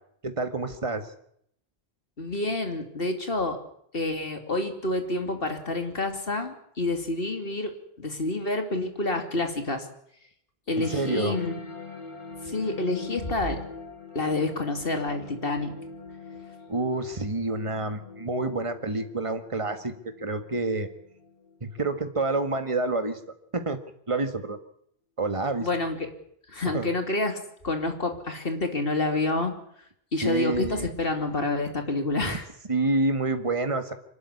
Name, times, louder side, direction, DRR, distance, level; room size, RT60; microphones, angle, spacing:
voice 1, 0.2-1.1 10.8-11.4 16.7-19.9 20.2-20.9 21.6-23.2 23.5-23.8 24.1-24.6 25.2-25.7 26.7-26.9 30.2-30.9 32.2-32.3 32.7-33.9, right 2 dB, 30° right, 9 dB, 1.8 m, -28 dB
voice 2, 2.2-3.6 3.9-9.9 10.7-11.5 12.4-13.6 14.1-15.7 25.6-26.1 26.5-27.4 27.6-29.5 30.1-32.5, left 2 dB, 65° left, 6 dB, 3.1 m, -28 dB
sound 1, 10.8-21.8, left 4 dB, 30° left, 3.7 m, -42 dB
25.0 x 12.5 x 9.8 m, 0.70 s
omnidirectional pair, 1.0 m